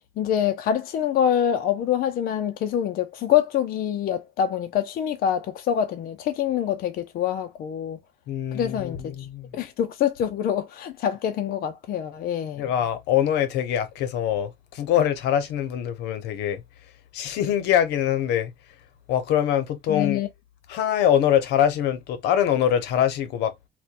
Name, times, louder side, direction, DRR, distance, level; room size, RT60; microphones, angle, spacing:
voice 1, 0.2-8.0 8.5-9.1 9.5-12.7 19.9-20.3, left 9 dB, 60° left, 0.5 m, -25 dB
voice 2, 8.3-9.5 12.6-16.6 17.1-18.5 19.1-20.2 20.7-23.5, left 10 dB, 85° left, 0.8 m, -23 dB
4.3 x 2.2 x 2.4 m
cardioid pair, 110°, 17 cm